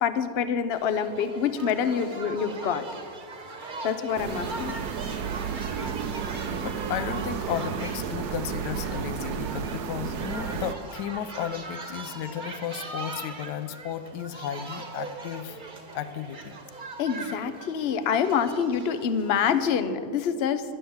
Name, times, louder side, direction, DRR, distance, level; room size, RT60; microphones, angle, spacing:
voice 1, 0.0-2.8 3.8-4.8 17.0-20.6, left 7 dB, 55° left, 11 dB, 0.7 m, -26 dB
sound 1, 0.7-19.8, right 2 dB, 30° right, 1.2 m, -40 dB
sound 2, 4.2-10.7, right 7 dB, 70° right, 1.1 m, -32 dB
voice 2, 6.5-15.6 15.9-16.6, left 9 dB, 75° left, 11 dB, 1.2 m, -34 dB
12.0 x 10.0 x 7.1 m, 2.2 s
omnidirectional pair, 1.9 m